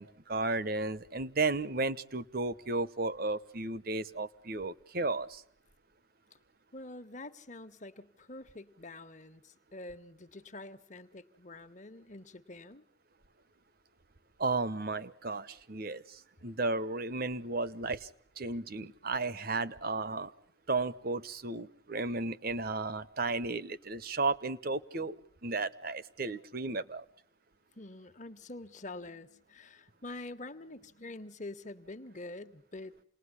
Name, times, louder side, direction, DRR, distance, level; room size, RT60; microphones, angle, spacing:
voice 1, 0.0-5.4 14.4-18.1 18.4-20.3 20.7-27.0, right 3 dB, 50° right, 15 dB, 1.1 m, -34 dB
voice 2, 6.7-12.8 27.7-32.9, left 2 dB, 40° left, 9 dB, 1.4 m, -46 dB
28.0 x 20.5 x 9.9 m, 0.64 s
head